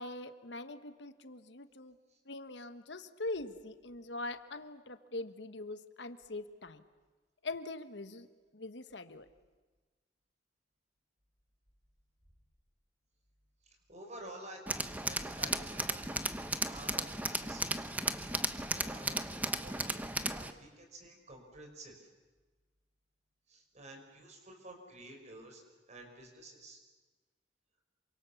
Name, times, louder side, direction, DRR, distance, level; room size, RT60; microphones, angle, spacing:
voice 1, 0.0-1.9 2.3-6.8 7.4-8.3 8.5-9.3, left 2 dB, 75° left, 10 dB, 1.3 m, -42 dB
voice 2, 13.9-19.3 19.6-22.1 23.5-25.6 25.9-26.8, right 1 dB, 40° right, 3 dB, 5.4 m, -52 dB
Tools, 14.7-20.5, right 2 dB, 10° right, 1.0 m, -35 dB
28.0 x 25.0 x 7.2 m, 1.3 s
head